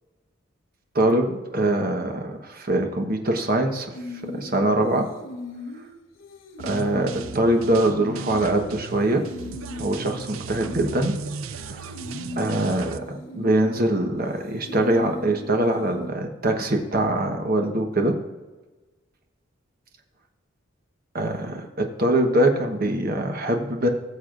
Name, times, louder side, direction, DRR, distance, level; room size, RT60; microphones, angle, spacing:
voice 1, 0.9-3.9 4.4-5.0 6.6-9.2 9.8-11.1 11.6-11.9 12.4-18.1 21.1-23.9, right 1 dB, 45° right, 3 dB, 1.2 m, -23 dB
sound 1, 3.9-16.1, left 2 dB, 75° left, 1.1 m, -39 dB
sound 2, 6.6-13.0, right 5 dB, 90° right, 0.5 m, -36 dB
19.5 x 7.1 x 2.6 m, 1.2 s
head